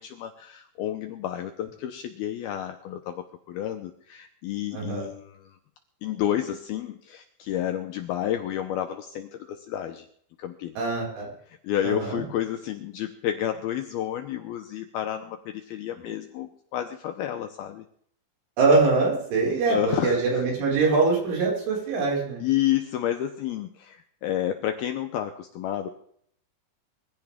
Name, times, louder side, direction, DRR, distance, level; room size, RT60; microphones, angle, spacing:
voice 1, 0.0-5.6 6.0-10.1 10.4-10.7 11.5-17.9 19.7-20.4 22.4-25.9, left 11 dB, 80° left, 7 dB, 2.3 m, -30 dB
voice 2, 4.7-5.1 10.8-11.3 11.8-12.2 18.6-22.4, right 3 dB, 85° right, -3 dB, 8.0 m, -23 dB
22.0 x 15.5 x 3.6 m, 0.64 s
omnidirectional pair, 5.4 m